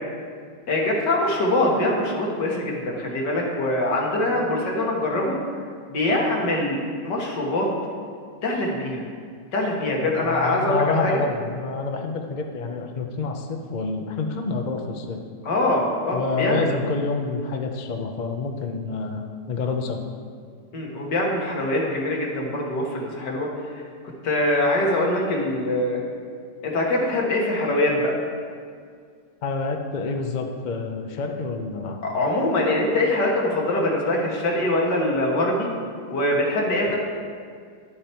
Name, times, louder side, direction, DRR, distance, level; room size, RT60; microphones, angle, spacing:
voice 1, 0.7-5.4 5.9-7.7 8.4-9.0 9.5-11.2 15.5-16.8 20.7-23.8 24.2-26.0 26.6-28.2 32.0-35.7 36.1-37.0, left 1 dB, 75° left, -2 dB, 2.2 m, -23 dB
voice 2, 10.0-15.2 16.1-20.0 29.4-32.0, left 4 dB, 50° left, 4 dB, 0.5 m, -28 dB
11.5 x 7.8 x 4.5 m, 2.1 s
omnidirectional pair, 1.9 m